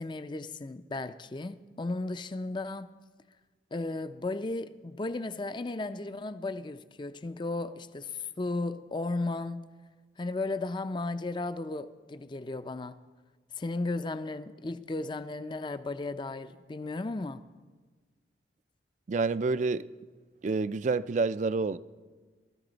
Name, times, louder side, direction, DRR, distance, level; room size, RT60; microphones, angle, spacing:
voice 1, 0.0-2.9 3.7-9.6 10.2-13.0 13.6-17.4, left 2 dB, 25° left, 0.4 m, -35 dB
voice 2, 19.1-19.8 20.4-21.8, right 4 dB, 40° right, 0.3 m, -28 dB
19.0 x 13.5 x 4.0 m
head